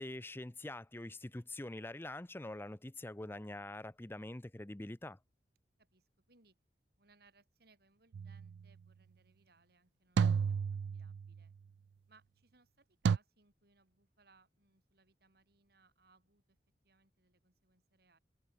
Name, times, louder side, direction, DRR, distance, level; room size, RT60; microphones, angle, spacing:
voice 1, 0.0-5.2, left 1 dB, 15° left, 0.6 m, -45 dB
voice 2, 5.8-6.6 7.0-10.7 10.9-11.5 12.1-16.6 16.8-18.2, right 3 dB, 60° right, 4.9 m, -69 dB
sound 1, 8.1-8.5 10.2-11.4 13.0-13.2, right 6 dB, 85° right, 0.3 m, -32 dB
head